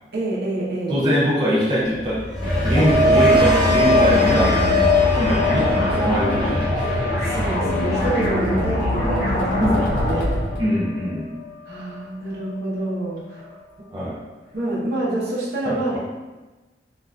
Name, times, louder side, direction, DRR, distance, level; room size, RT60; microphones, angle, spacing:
voice 1, 0.1-1.1 7.2-10.4 11.7-13.5 14.5-16.0, right 2 dB, 60° right, -6 dB, 0.8 m, -27 dB
voice 2, 0.9-2.2 2.6-4.5 5.1-6.8 9.6-9.9 10.6-11.3 13.9-14.2 15.6-16.0, equal, 25° right, -7 dB, 0.5 m, -22 dB
sound 1, 1.9-12.0 12.4-12.8, left 2 dB, 5° left, 0.7 m, -23 dB
sound 2, 2.4-10.6, equal, 50° left, 0.9 m, -22 dB
3.7 x 2.4 x 2.3 m, 1.2 s
head